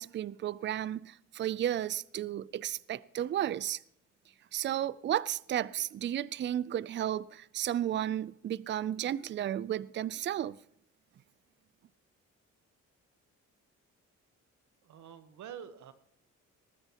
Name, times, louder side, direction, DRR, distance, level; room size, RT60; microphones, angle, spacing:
voice 1, 0.0-3.8 4.5-10.6, right 11 dB, 40° right, 0.4 m, -33 dB
voice 2, 14.8-15.9, right 9 dB, 75° right, 1.2 m, -47 dB
19.5 x 13.5 x 2.9 m
cardioid pair, 90°, 30 cm